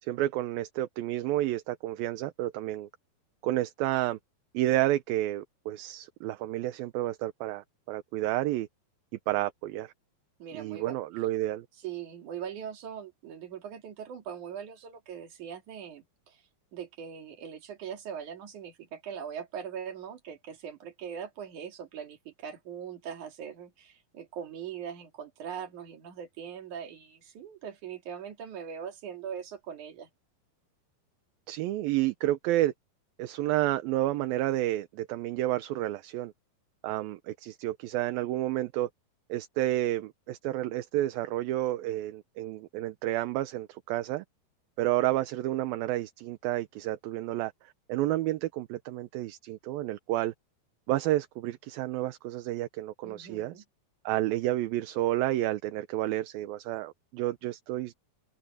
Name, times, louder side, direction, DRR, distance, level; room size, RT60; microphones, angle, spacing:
voice 1, 0.0-2.9 3.4-4.2 4.5-8.7 9.3-9.9 10.5-11.7 31.5-32.7 33.2-36.3 36.8-38.9 39.3-44.2 44.8-50.3 50.9-53.6 54.1-57.9, right 15 dB, 75° right, 2.5 m, -30 dB
voice 2, 10.4-11.0 11.8-16.4 16.7-30.1 53.0-53.6, right 8 dB, 55° right, 3.6 m, -41 dB
omnidirectional pair, 4.6 m